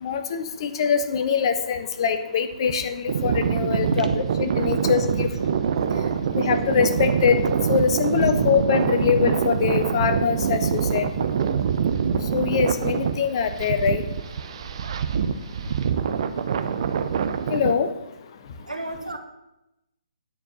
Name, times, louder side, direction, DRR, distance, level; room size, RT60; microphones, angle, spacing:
voice 1, 0.0-4.1 4.4-5.3 6.3-7.4 7.7-11.1 12.3-14.0 17.5-17.9, left 7 dB, 40° left, 10 dB, 0.9 m, -23 dB
sound 1, 3.1-17.7, right 7 dB, 50° right, 0.6 m, -25 dB
voice 2, 3.9-4.2 18.7-19.2, right 2 dB, 85° right, 6 dB, 1.4 m, -29 dB
9.5 x 4.5 x 6.6 m, 0.92 s
figure-of-eight pair, 135°, 4 cm